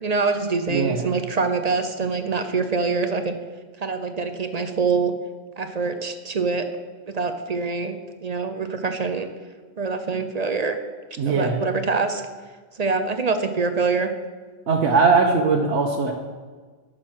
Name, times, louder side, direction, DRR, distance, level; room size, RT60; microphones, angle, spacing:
voice 1, 0.0-3.4 3.8-5.1 5.6-6.6 7.1-7.9 8.2-9.3 9.8-10.8 11.2-12.2 12.7-14.1, right 4 dB, 40° right, 8 dB, 0.7 m, -24 dB
voice 2, 0.7-1.1 11.2-11.6 14.7-16.1, right 4 dB, 65° right, 1 dB, 1.1 m, -20 dB
10.0 x 6.4 x 6.2 m, 1.4 s
omnidirectional pair, 1.3 m